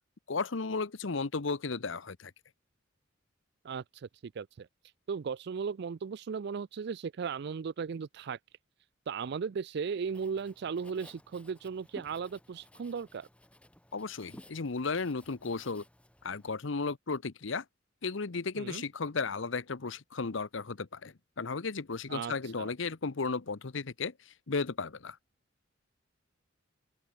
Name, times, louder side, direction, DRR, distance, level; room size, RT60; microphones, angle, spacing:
voice 1, 0.3-2.3 13.9-15.8 16.2-17.6 18.0-25.2, left 4 dB, 65° left, 0.9 m, -34 dB
voice 2, 3.6-4.7 5.1-8.4 9.1-13.3 18.6-18.8 22.1-22.7, right 6 dB, 55° right, 0.4 m, -36 dB
Writing, 10.0-16.5, left 1 dB, 5° left, 3.4 m, -56 dB
open air
head